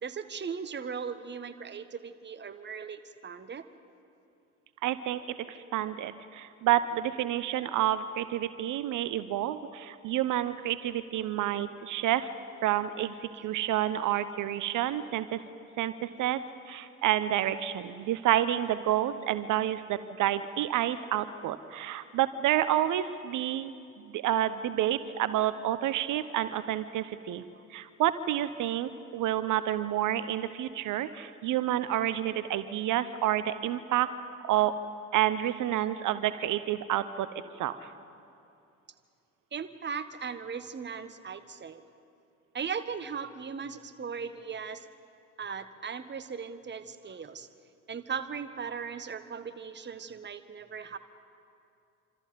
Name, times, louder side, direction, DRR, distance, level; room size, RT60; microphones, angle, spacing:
voice 1, 0.0-3.7 27.5-27.6 39.5-41.8 42.5-44.8 45.4-47.5 47.9-51.0, right 6 dB, 30° right, 10 dB, 1.5 m, -38 dB
voice 2, 4.8-5.2 5.5-12.3 12.6-15.4 15.8-16.4 16.7-23.7 24.1-27.4 27.7-34.1 34.4-34.7 35.1-37.3 37.6-37.9, right 12 dB, 50° right, 13 dB, 1.0 m, -29 dB
27.5 x 26.0 x 5.2 m, 2.6 s
figure-of-eight pair, 55°, 38 cm